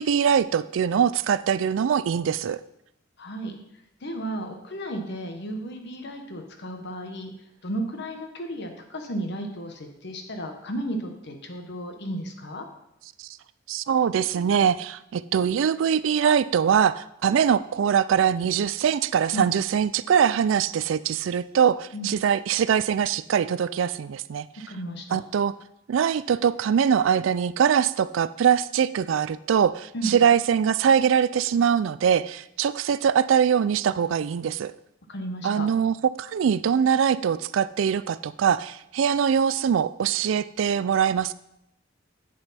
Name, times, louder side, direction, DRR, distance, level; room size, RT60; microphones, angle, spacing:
voice 1, 0.0-2.6 13.2-13.3 13.7-24.5 25.1-25.5 25.9-34.7 35.4-41.3, right 8 dB, 70° right, 16 dB, 0.3 m, -22 dB
voice 2, 3.2-3.6 4.0-7.3 7.6-12.7 19.3-19.5 21.9-22.1 24.7-25.2 29.9-30.2 35.1-35.7, right 1 dB, 60° left, 5 dB, 1.2 m, -33 dB
7.9 x 7.8 x 4.2 m, 0.80 s
head